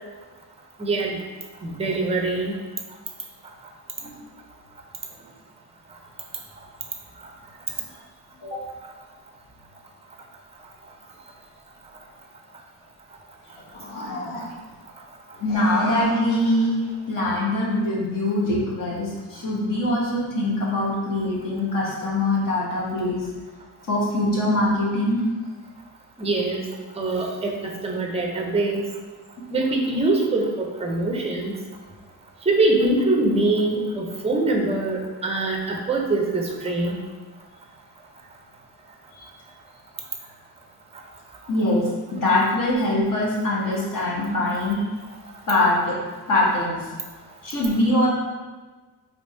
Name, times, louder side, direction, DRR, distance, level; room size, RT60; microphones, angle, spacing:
voice 1, 0.8-1.2 1.6-2.6 26.2-26.6 27.0-28.8 29.5-31.5 32.5-36.9, right 2 dB, 15° right, 0 dB, 0.5 m, -23 dB
sound 1, 13.4-14.8 15.3-16.9, left 1 dB, 85° left, 1.0 m, -36 dB
voice 2, 15.4-16.8 17.1-23.3 23.9-25.2 39.1-39.3 41.5-44.9 45.5-45.9 46.3-46.8 47.4-48.1, left 1 dB, 55° left, -5 dB, 1.2 m, -23 dB
3.4 x 3.3 x 4.2 m, 1.3 s
wide cardioid pair, 180°, 40 cm